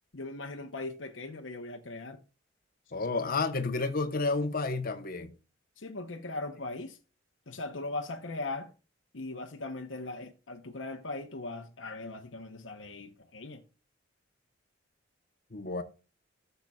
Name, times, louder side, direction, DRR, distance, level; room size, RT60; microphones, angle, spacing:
voice 1, 0.1-2.2 5.8-7.0 7.5-8.7 9.1-13.6, left 2 dB, 70° left, 1.0 m, -39 dB
voice 2, 2.9-5.3 15.5-15.8, left 3 dB, 50° left, 1.0 m, -30 dB
15.0 x 6.8 x 2.4 m
head